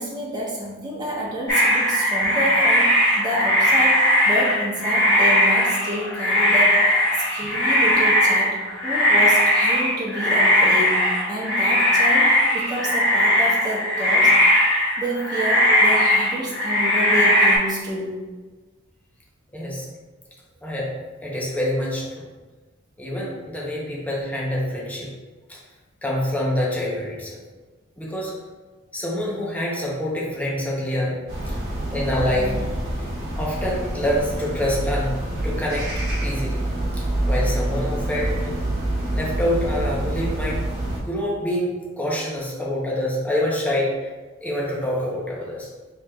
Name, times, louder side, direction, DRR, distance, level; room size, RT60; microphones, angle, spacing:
voice 1, 0.0-14.3 15.0-18.1, right 1 dB, 20° right, -5 dB, 0.9 m, -29 dB
sound 1, 1.5-17.6, equal, 55° left, 1.2 m, -19 dB
voice 2, 19.5-19.9 20.6-20.9 21.2-22.3 23.0-25.1 25.5-25.6 26.0-27.4 28.0-28.3 28.9-31.6 31.9-32.8 33.4-35.9 36.2-36.6 36.9-38.6 39.1-40.6 41.0-44.1 44.4-45.7, left 1 dB, 5° left, -4 dB, 0.6 m, -26 dB
sound 2, 31.3-41.0, right 1 dB, 50° right, 1.1 m, -26 dB
4.5 x 3.4 x 2.2 m, 1.3 s
head